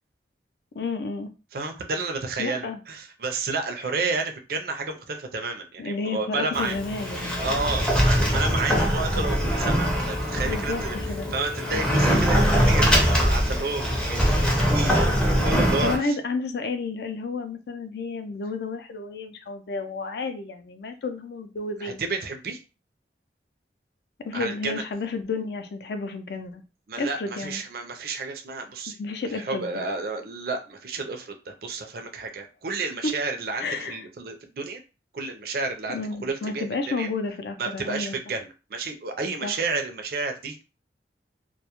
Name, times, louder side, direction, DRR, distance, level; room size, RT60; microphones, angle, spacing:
voice 1, 0.7-1.3 2.4-2.8 5.8-7.4 10.4-10.8 11.1-11.3 15.8-22.0 24.2-26.6 27.0-27.6 29.0-29.7 33.0-33.1 33.6-34.0 35.9-38.2 39.4-39.5, left 3 dB, 65° left, 7 dB, 0.4 m, -31 dB
voice 2, 1.5-6.8 7.4-16.2 21.8-22.6 24.3-24.8 26.9-29.0 29.3-34.8 35.1-37.1 37.6-40.6, right 3 dB, 55° right, 5 dB, 0.4 m, -31 dB
Sliding door, 6.5-16.0, equal, 5° left, 0.4 m, -22 dB
2.2 x 2.0 x 2.9 m, 0.31 s
head